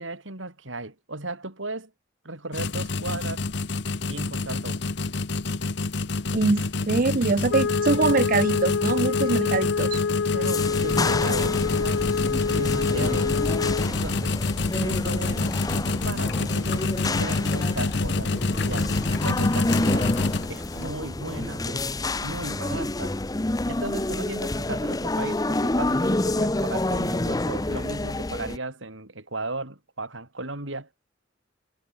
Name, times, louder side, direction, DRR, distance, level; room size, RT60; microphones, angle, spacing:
voice 1, 0.0-1.9 2.2-3.4 4.1-4.8 7.2-7.4 9.1-9.6 10.3-12.0 12.4-13.4 13.9-14.3 14.8-20.1 20.5-21.8 22.2-23.2 23.7-30.9, right 2 dB, 75° right, 4.7 m, -36 dB
sound 1, 2.5-20.9, left 3 dB, 60° left, 0.9 m, -28 dB
voice 2, 6.3-10.0, right 3 dB, 45° right, 0.6 m, -23 dB
Wind instrument woodwind instrument, 7.5-13.9, left 5 dB, 80° left, 0.5 m, -26 dB
sound 2, 10.4-28.6, left 2 dB, 20° left, 0.7 m, -28 dB
head